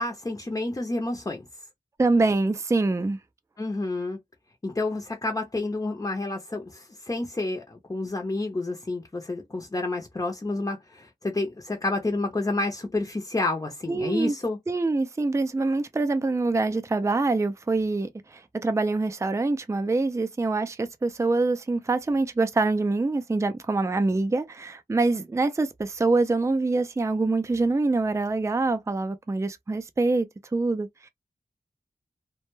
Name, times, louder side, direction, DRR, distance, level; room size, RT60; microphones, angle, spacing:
voice 1, 0.0-1.4 3.6-4.2 4.6-14.6, left 2 dB, 25° left, 0.6 m, -29 dB
voice 2, 2.0-3.2 13.9-14.3 14.7-31.1, right 3 dB, 20° right, 0.4 m, -25 dB
2.2 x 2.1 x 3.0 m
wide cardioid pair, 60°, 15 cm